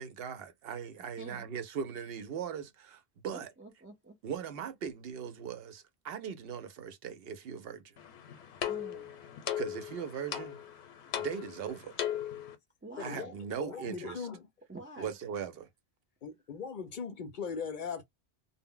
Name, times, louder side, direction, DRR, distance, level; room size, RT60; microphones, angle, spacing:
voice 1, 0.0-3.5 4.2-8.0 9.6-10.6 11.2-12.0 13.0-14.3 15.0-15.7, right 7 dB, 65° right, 0.7 m, -39 dB
voice 2, 3.3-4.3 8.7-9.1 12.8-13.4 14.7-15.1, right 2 dB, 20° right, 0.4 m, -48 dB
sound 1, 8.0-12.6, left 10 dB, 80° left, 0.9 m, -38 dB
voice 3, 13.0-14.5 16.2-18.0, left 6 dB, 55° left, 0.6 m, -39 dB
2.1 x 2.0 x 3.5 m
omnidirectional pair, 1.1 m